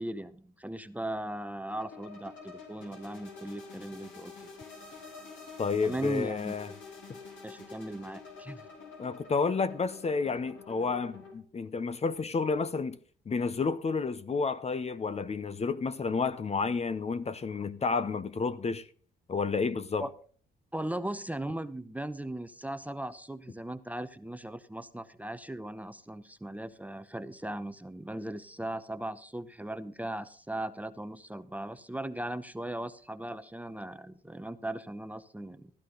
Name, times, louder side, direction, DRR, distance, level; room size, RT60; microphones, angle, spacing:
voice 1, 0.0-4.3 5.8-6.5 7.4-8.6 20.0-20.1 20.7-35.7, right 1 dB, 5° right, 0.7 m, -38 dB
sound 1, 1.7-11.3, left 4 dB, 75° left, 4.8 m, -48 dB
voice 2, 5.6-6.7 9.0-13.0 13.3-18.9 19.3-20.1, left 4 dB, 35° left, 0.8 m, -30 dB
15.0 x 11.5 x 3.9 m
cardioid pair, 90°, 20 cm